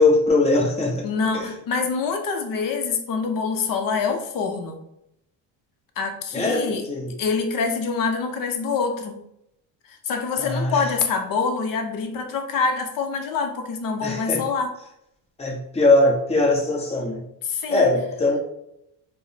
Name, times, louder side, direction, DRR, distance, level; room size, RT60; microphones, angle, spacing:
voice 1, 0.0-1.1 1.3-1.5 6.3-7.1 10.4-10.8 14.0-14.4 15.4-17.2 17.7-18.4, left 2 dB, 15° left, -1 dB, 0.7 m, -20 dB
voice 2, 1.0-4.8 6.0-6.8 7.2-9.1 9.9-14.7 17.4-17.9, left 5 dB, 50° left, 5 dB, 0.6 m, -25 dB
4.5 x 2.0 x 2.7 m, 0.79 s
cardioid pair, 135°, 44 cm